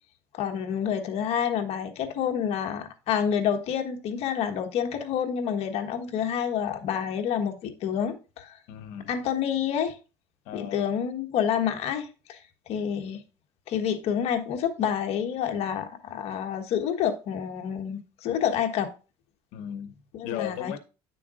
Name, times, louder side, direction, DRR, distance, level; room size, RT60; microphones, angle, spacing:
voice 1, 0.3-8.6 9.1-10.0 10.5-13.2 13.7-18.9 20.1-20.8, left 8 dB, 60° left, 1.4 m, -28 dB
voice 2, 8.7-9.1 10.4-10.8 19.5-20.0 20.2-20.8, left 10 dB, 85° left, 1.0 m, -36 dB
9.6 x 6.9 x 2.5 m
cardioid pair, 120°, 12 cm